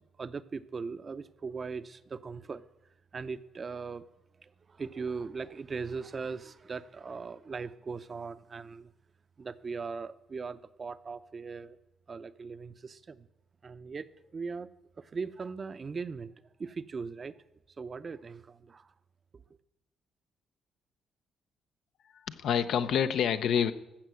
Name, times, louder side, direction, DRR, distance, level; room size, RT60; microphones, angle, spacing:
voice 1, 0.2-2.6 3.1-4.1 4.4-8.9 9.4-11.8 12.1-13.3 13.6-14.7 15.0-16.3 16.6-17.4 17.8-18.9 19.3-19.4, right 5 dB, 40° right, 0.6 m, -39 dB
voice 2, 22.1-23.7, left 8 dB, 75° left, 0.7 m, -27 dB
14.5 x 5.9 x 7.7 m
cardioid pair, 90°, 0 cm